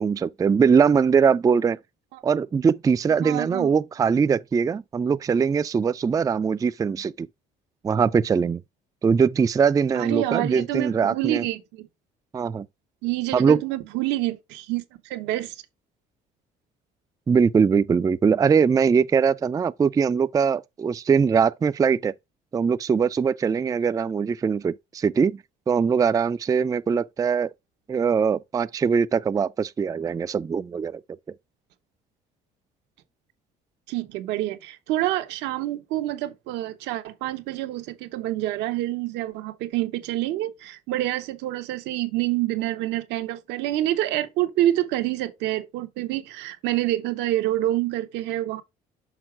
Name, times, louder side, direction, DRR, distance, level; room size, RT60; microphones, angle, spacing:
voice 1, 0.0-1.8 2.2-7.3 7.8-8.6 9.0-11.4 12.3-12.7 13.3-13.6 17.3-22.1 22.5-25.4 25.7-27.5 27.9-31.0, right 6 dB, 20° right, 0.3 m, -21 dB
voice 2, 3.2-3.7 9.9-11.9 13.0-15.5 33.9-48.6, right 15 dB, 85° right, 1.0 m, -27 dB
6.4 x 3.7 x 4.8 m
supercardioid pair, 90°, 18 cm